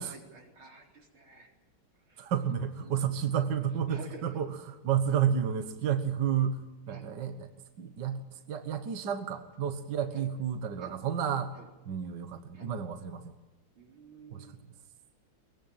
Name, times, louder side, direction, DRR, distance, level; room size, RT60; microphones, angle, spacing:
voice 1, 0.0-1.5 1.9-3.2 3.9-4.4 6.9-7.1 10.1-10.2 10.8-10.9 11.5-11.7 12.5-12.7 13.7-14.6, right 2 dB, 90° right, 1 dB, 4.9 m, -51 dB
voice 2, 2.2-7.5 7.8-11.6 11.9-13.4 14.3-14.5, right 8 dB, 60° right, 8 dB, 1.9 m, -31 dB
23.0 x 21.0 x 8.8 m, 1.0 s
omnidirectional pair, 2.2 m